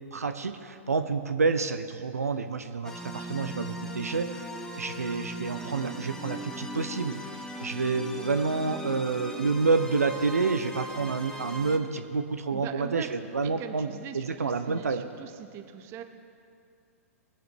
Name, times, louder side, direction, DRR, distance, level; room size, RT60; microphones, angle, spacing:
voice 1, 0.1-4.4 4.7-13.9 14.1-15.0, right 4 dB, 80° right, 8 dB, 0.7 m, -29 dB
sound 1, 2.8-11.8, equal, 5° left, 1.1 m, -38 dB
voice 2, 12.5-13.2 13.4-16.0, right 9 dB, 30° right, 8 dB, 0.9 m, -41 dB
21.0 x 7.7 x 4.5 m, 2.5 s
figure-of-eight pair, 110°, 8 cm